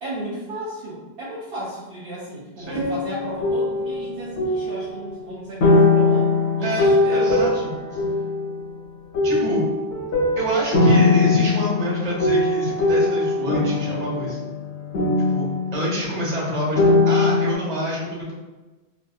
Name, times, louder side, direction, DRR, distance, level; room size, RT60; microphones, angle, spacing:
voice 1, 0.0-7.3, right 1 dB, 65° right, -7 dB, 0.8 m, -34 dB
sound 1, 2.6-5.1 5.6-8.7 9.1-16.5 16.8-17.6, left 2 dB, 80° left, 1.0 m, -21 dB
voice 2, 6.6-8.0 9.2-9.6 10.4-14.4 15.3-18.3, equal, 40° right, -5 dB, 1.0 m, -27 dB
3.4 x 2.6 x 2.3 m, 1.1 s
omnidirectional pair, 1.1 m